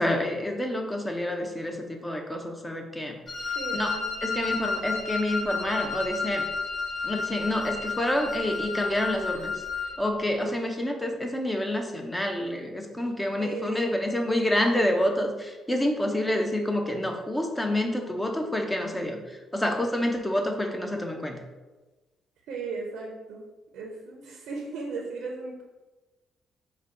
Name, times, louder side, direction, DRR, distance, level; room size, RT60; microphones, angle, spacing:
voice 1, 0.0-3.2 3.7-3.9 4.2-6.5 7.0-9.5 10.0-19.2 19.5-21.4, left 1 dB, 10° left, 3 dB, 0.6 m, -28 dB
Wind instrument woodwind instrument, 3.3-10.0, left 4 dB, 40° left, 1.1 m, -32 dB
voice 2, 3.5-4.1 13.4-13.8 22.5-23.4 23.7-25.6, right 4 dB, 85° right, -1 dB, 0.6 m, -36 dB
5.0 x 2.2 x 3.7 m, 1.2 s
cardioid pair, 90°, 0 cm